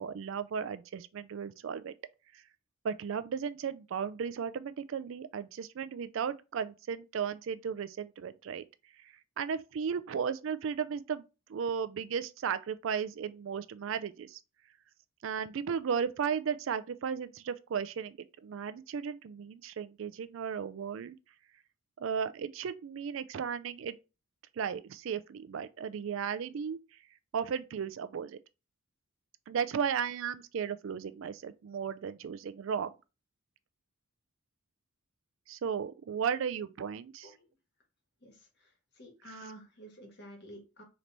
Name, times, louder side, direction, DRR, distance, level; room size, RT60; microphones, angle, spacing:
voice 1, 0.0-1.9 2.3-2.4 2.8-8.6 9.4-11.2 11.5-14.4 15.2-21.2 22.0-24.0 24.6-26.8 27.3-28.4 29.5-32.9 35.5-37.3 39.3-39.4, right 7 dB, 70° right, 0.3 m, -35 dB
voice 2, 39.0-40.8, right 1 dB, 50° left, 1.3 m, -49 dB
3.9 x 3.0 x 3.3 m
head